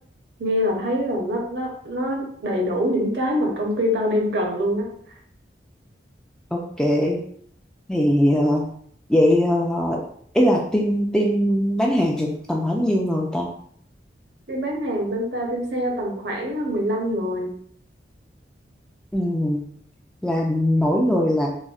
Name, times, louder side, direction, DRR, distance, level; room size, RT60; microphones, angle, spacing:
voice 1, 0.4-4.9 14.5-17.5, equal, 70° right, 0 dB, 0.8 m, -24 dB
voice 2, 6.5-7.2 7.9-8.6 9.1-10.0 10.3-13.5 19.1-19.6 20.2-21.5, equal, 5° left, -1 dB, 0.3 m, -20 dB
4.0 x 2.1 x 2.4 m, 0.63 s
head